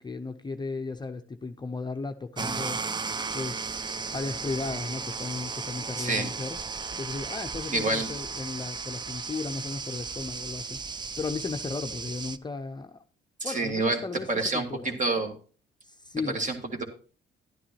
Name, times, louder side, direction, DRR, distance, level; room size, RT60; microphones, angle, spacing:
voice 1, 0.0-2.8 3.3-3.8 4.1-6.6 6.9-13.0 13.4-14.3 14.5-15.0 15.8-16.4, left 4 dB, 20° left, 0.6 m, -35 dB
sound 1, 2.4-12.4, right 4 dB, 20° right, 0.4 m, -35 dB
voice 2, 6.0-6.3 7.7-8.1 13.4-14.0 14.3-15.4 16.3-16.8, right 2 dB, 40° right, 1.8 m, -28 dB
11.0 x 9.8 x 2.9 m
cardioid pair, 90°, 20 cm